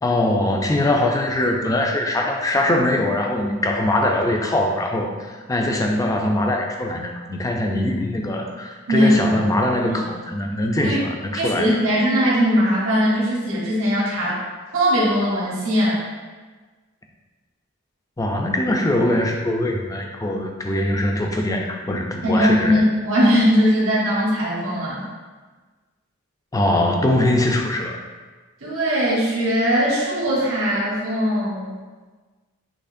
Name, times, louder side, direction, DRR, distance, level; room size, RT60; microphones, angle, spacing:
voice 1, 0.0-11.7 18.2-22.8 26.5-28.0, left 1 dB, 15° left, 2 dB, 0.3 m, -22 dB
voice 2, 8.9-9.4 9.9-10.0 10.8-11.0 11.3-14.4 14.7-16.0 22.2-25.0 28.6-31.7, equal, 65° right, -6 dB, 1.1 m, -20 dB
6.6 x 2.8 x 2.5 m, 1.4 s
head